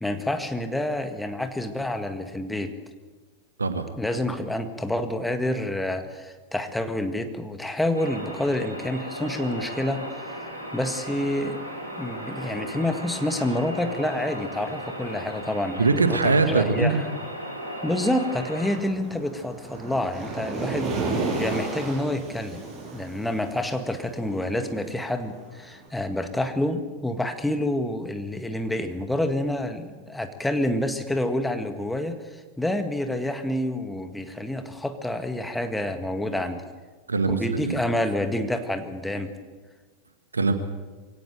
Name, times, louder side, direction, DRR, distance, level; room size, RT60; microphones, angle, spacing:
voice 1, 0.0-2.7 4.0-10.0 10.7-11.6 12.0-17.1 17.8-22.6 22.9-36.6 37.3-39.3, left 1 dB, 5° left, 7 dB, 1.8 m, -28 dB
voice 2, 3.6-3.9 15.8-17.1 37.1-37.8 40.3-40.5, right 4 dB, 75° right, 9 dB, 1.7 m, -22 dB
sound 1, 7.9-18.8, equal, 90° left, 4.4 m, -36 dB
Waves surf, 18.6-25.7, right 3 dB, 25° right, 7.1 m, -33 dB
23.0 x 17.5 x 7.8 m, 1.4 s
figure-of-eight pair, 90°, 0 cm